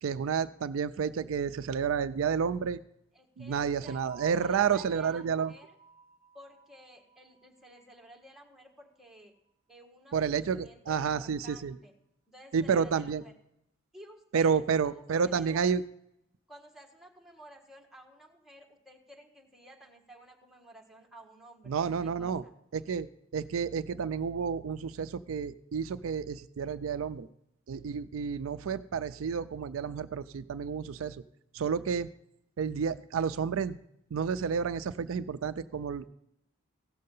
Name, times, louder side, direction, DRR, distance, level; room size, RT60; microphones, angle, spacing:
voice 1, 0.0-2.8 3.4-5.5 10.1-11.7 12.5-13.2 14.3-15.8 21.7-22.4 22.7-23.1 23.3-27.3 27.7-31.2 31.5-32.1 32.6-33.8 34.1-36.1, right 6 dB, 75° right, 13 dB, 0.4 m, -30 dB
voice 2, 3.1-5.7 6.3-9.3 9.7-11.9 12.3-13.3 13.9-14.9 15.2-15.7 16.5-21.7 22.0-22.5, right 1 dB, ahead, 1 dB, 1.5 m, -53 dB
sound 1, 3.9-8.5, right 5 dB, 40° right, 0.7 m, -53 dB
16.5 x 6.6 x 5.4 m, 0.79 s
head